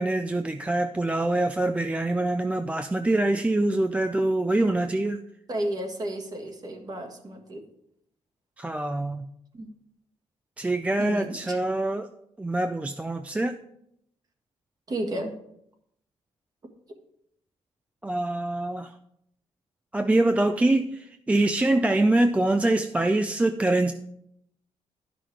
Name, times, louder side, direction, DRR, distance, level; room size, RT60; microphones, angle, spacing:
voice 1, 0.0-5.2 8.6-9.3 10.6-12.1 12.4-13.6 18.0-18.9 19.9-23.9, right 2 dB, 10° right, 8 dB, 0.4 m, -24 dB
voice 2, 5.5-7.6 9.5-9.7 11.0-11.6 14.9-15.3, right 1 dB, 35° right, 3 dB, 1.7 m, -32 dB
11.5 x 6.0 x 4.7 m, 0.75 s
cardioid pair, 120°, 12 cm